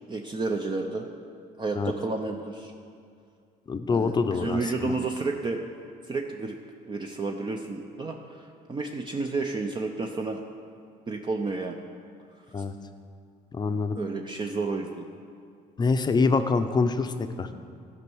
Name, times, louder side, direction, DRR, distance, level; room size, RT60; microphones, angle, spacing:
voice 1, 0.1-1.1 1.6-2.7 3.9-5.6 6.0-6.6 6.9-10.4 11.1-11.8 12.6-12.7 13.9-15.0, right 3 dB, 25° right, 3 dB, 0.6 m, -31 dB
voice 2, 3.7-4.9 12.5-12.7 13.5-14.0 15.8-17.1 17.4-17.5, left 4 dB, 25° left, 8 dB, 0.6 m, -25 dB
13.5 x 5.4 x 6.2 m, 2.3 s
cardioid pair, 110°, 17 cm